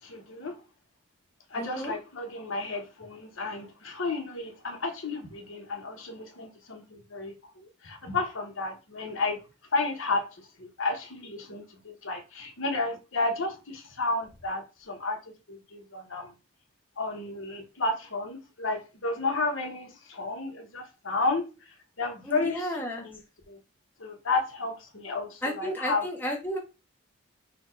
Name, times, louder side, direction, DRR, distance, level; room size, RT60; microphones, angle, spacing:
voice 1, 0.0-0.6 1.5-9.4 9.7-15.2 15.5-16.3 17.0-23.2 23.5-23.6 24.0-26.1, left 3 dB, 70° left, 0.9 m, -32 dB
voice 2, 1.5-1.9 22.2-23.1 25.4-26.6, equal, 10° left, 0.6 m, -33 dB
3.9 x 2.2 x 4.4 m
head